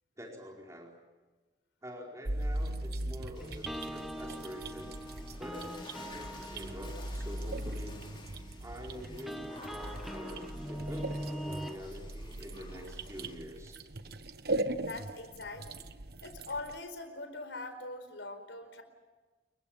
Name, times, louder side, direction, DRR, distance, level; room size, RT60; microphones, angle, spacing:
voice 1, 0.2-0.9 1.8-4.9 5.4-8.0 8.6-13.8, equal, 15° right, -1 dB, 4.6 m, -46 dB
sound 1, 2.3-16.8, right 1 dB, 60° right, 1.3 m, -39 dB
Water / Splash splatter, 3.3-13.3, left 2 dB, 25° left, 4.8 m, -52 dB
sound 2, 3.4-11.8, equal, ahead, 1.0 m, -43 dB
voice 2, 14.8-15.8 16.2-18.8, left 2 dB, 85° left, 8 dB, 4.7 m, -42 dB
28.5 x 23.0 x 7.4 m, 1.3 s
head